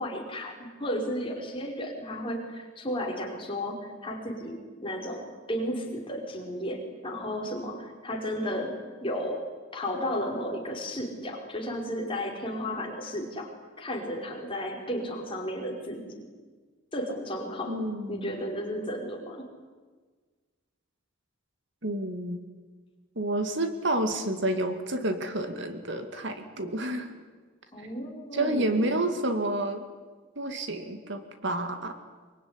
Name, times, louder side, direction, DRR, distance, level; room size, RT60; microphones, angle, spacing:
voice 1, 0.0-8.7 9.0-13.5 13.8-16.2 16.9-19.5 27.7-29.0, equal, 25° left, -1 dB, 5.2 m, -34 dB
voice 2, 17.7-18.4 21.8-22.4 23.2-27.1 28.3-29.9 30.4-32.0, right 1 dB, 60° right, 7 dB, 2.4 m, -29 dB
24.5 x 23.5 x 9.9 m, 1.4 s
head